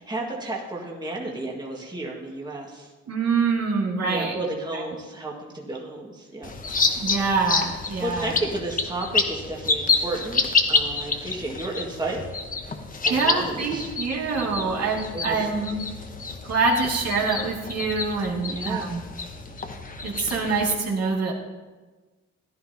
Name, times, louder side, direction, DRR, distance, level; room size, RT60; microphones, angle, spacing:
voice 1, 0.0-2.9 4.0-6.5 8.0-12.2 13.0-13.9 14.3-15.5 18.4-18.9, right 2 dB, 15° right, -2 dB, 1.8 m, -33 dB
voice 2, 3.1-4.4 4.7-4.8 7.0-8.3 13.1-15.8 16.4-19.0 20.0-21.3, right 4 dB, 55° right, -2 dB, 2.3 m, -25 dB
sound 1, 6.4-20.7, left 4 dB, 30° left, 1.1 m, -28 dB
14.5 x 10.5 x 2.8 m, 1.3 s
cardioid pair, 90°, 30 cm